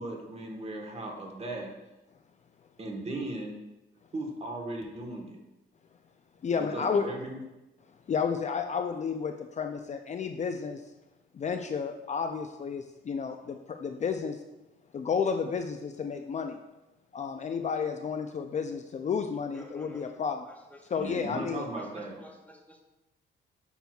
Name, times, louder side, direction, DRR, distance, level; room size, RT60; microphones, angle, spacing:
voice 1, 0.0-1.7 2.8-3.6 4.1-5.4 6.6-7.4 21.0-22.2, right 2 dB, 30° right, 2 dB, 1.3 m, -37 dB
voice 2, 6.4-7.1 8.1-10.8 11.3-14.4 14.9-16.6 17.1-20.4 20.9-21.7, left 6 dB, 35° left, 6 dB, 0.4 m, -31 dB
voice 3, 19.5-20.9 21.5-22.8, left 1 dB, 10° left, 1 dB, 0.9 m, -52 dB
7.0 x 5.9 x 2.3 m, 0.98 s
cardioid pair, 90°, 20 cm